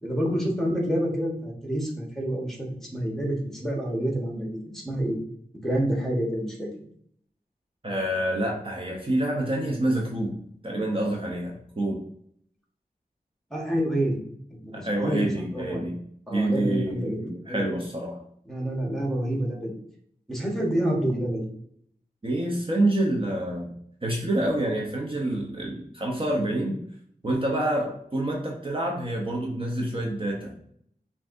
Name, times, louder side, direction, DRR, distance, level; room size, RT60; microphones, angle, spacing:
voice 1, 0.0-5.2 5.5-6.7 13.5-14.2 14.6-15.9 16.3-17.2 17.5-17.6 18.5-19.8 20.3-21.5, right 1 dB, ahead, -1 dB, 1.3 m, -28 dB
voice 2, 7.8-10.4 10.6-12.0 14.7-16.0 16.3-18.2 22.2-23.7 24.0-26.8 27.2-30.7, right 1 dB, 35° right, -2 dB, 0.7 m, -27 dB
5.6 x 2.7 x 2.6 m, 0.67 s
wide cardioid pair, 70°, 16 cm